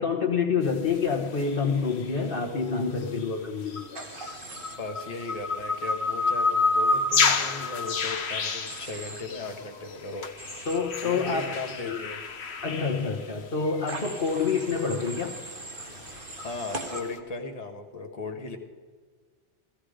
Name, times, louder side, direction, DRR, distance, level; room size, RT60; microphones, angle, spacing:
voice 1, 0.0-3.9 10.7-11.6 11.9-12.0 12.6-15.4, left 5 dB, 55° left, 1 dB, 1.4 m, -27 dB
sound 1, 0.7-2.4 3.0-17.2, left 3 dB, 75° left, 1.3 m, -30 dB
Human voice / Train, 3.9-4.8 8.7-9.2 10.4-10.8 13.9-17.0, right 2 dB, 55° right, 1.8 m, -40 dB
voice 2, 4.7-10.3 11.0-12.2 16.4-18.6, left 3 dB, 35° left, 3 dB, 1.4 m, -37 dB
15.5 x 15.0 x 5.0 m, 1.6 s
omnidirectional pair, 1.1 m